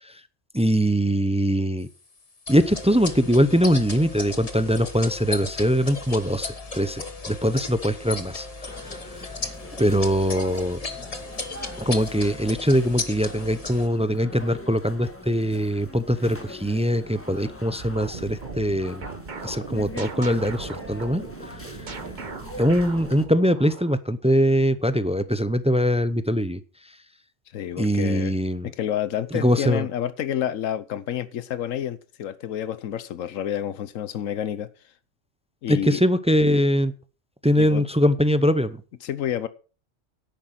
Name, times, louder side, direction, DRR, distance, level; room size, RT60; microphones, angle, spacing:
voice 1, 0.5-1.9 2.5-9.0 9.8-10.8 11.8-19.0 19.4-21.9 22.6-26.6 27.8-28.7 29.3-29.9 35.7-36.9 37.4-38.8, equal, 10° right, 0.4 m, -22 dB
sound 1, 2.5-13.9, left 3 dB, 30° left, 1.3 m, -35 dB
sound 2, 8.7-23.2, left 1 dB, 10° left, 1.4 m, -42 dB
sound 3, 17.8-24.0, right 4 dB, 40° right, 1.2 m, -38 dB
voice 2, 27.5-28.3 28.8-34.7 35.6-36.0 37.6-37.8 39.0-39.5, left 10 dB, 90° left, 1.2 m, -29 dB
10.5 x 8.8 x 5.9 m
omnidirectional pair, 1.3 m